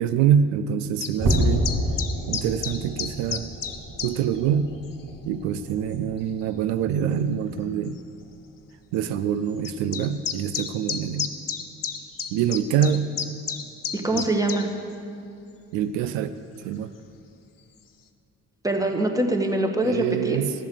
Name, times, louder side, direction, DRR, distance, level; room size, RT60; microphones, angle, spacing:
voice 1, 0.0-1.7 2.3-3.5 4.0-4.7 5.3-8.0 8.9-11.3 12.3-13.1 14.1-14.3 15.7-16.3 16.6-16.9 19.8-20.5, right 8 dB, 85° right, 11 dB, 0.5 m, -25 dB
sound 1, 1.0-4.1 4.8-5.0 5.9-6.0 7.1-7.2 7.5-7.6 7.9-8.0 9.6-14.6, left 7 dB, 50° left, 1.0 m, -30 dB
sound 2, 1.1-7.8 8.2-8.5 8.9-9.0 9.6-9.7, equal, 60° right, 2.5 m, -30 dB
voice 2, 13.9-14.7 18.6-20.4, right 1 dB, 10° right, 3 dB, 1.7 m, -24 dB
13.0 x 7.1 x 6.4 m, 2.6 s
supercardioid pair, 50°, 41 cm